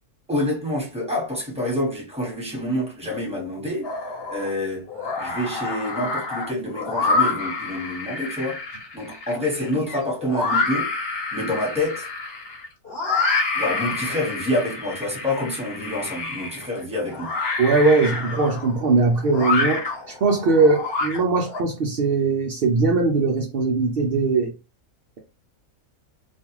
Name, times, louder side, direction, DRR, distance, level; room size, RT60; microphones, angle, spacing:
voice 1, 0.3-3.9 4.3-4.9 5.2-8.6 8.9-10.9 11.3-12.1 13.5-17.3 18.0-18.1, left 1 dB, 5° right, 1.1 m, -27 dB
sound 1, 3.8-4.5 4.9-21.6, left 3 dB, 45° left, 1.0 m, -28 dB
voice 2, 17.6-24.5, right 3 dB, 75° right, 0.5 m, -20 dB
2.5 x 2.3 x 2.9 m
omnidirectional pair, 1.5 m